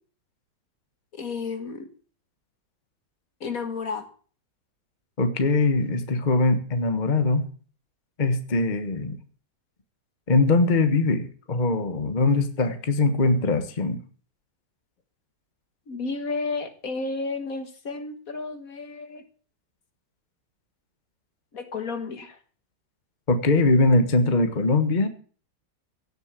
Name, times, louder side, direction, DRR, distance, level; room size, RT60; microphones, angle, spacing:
voice 1, 1.1-1.9 3.4-4.0 15.9-19.2 21.5-22.4, left 4 dB, 50° left, 9 dB, 1.9 m, -32 dB
voice 2, 5.2-7.5 8.2-9.2 10.3-14.0 23.3-25.1, left 3 dB, 30° left, 9 dB, 1.3 m, -22 dB
16.5 x 7.0 x 8.3 m, 0.43 s
omnidirectional pair, 1.9 m